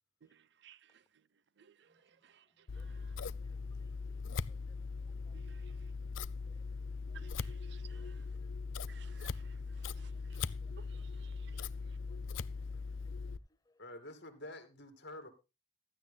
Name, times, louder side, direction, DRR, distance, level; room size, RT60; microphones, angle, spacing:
voice 1, 0.2-3.2 5.3-5.9 7.1-8.4 8.9-12.0, right 9 dB, 60° right, 0.5 m, -62 dB
voice 2, 1.9-3.1 3.4-5.4 6.5-7.2 7.9-8.1 8.3-9.2 10.1-10.2 10.6-11.0 11.3-11.6 12.1-12.4 13.0-13.1 13.6-13.8, left 2 dB, 20° left, 0.8 m, -73 dB
Scissors, 2.7-13.4, left 4 dB, 75° left, 0.5 m, -40 dB
voice 3, 13.8-15.3, left 1 dB, 55° left, 2.4 m, -48 dB
16.0 x 13.0 x 2.2 m
head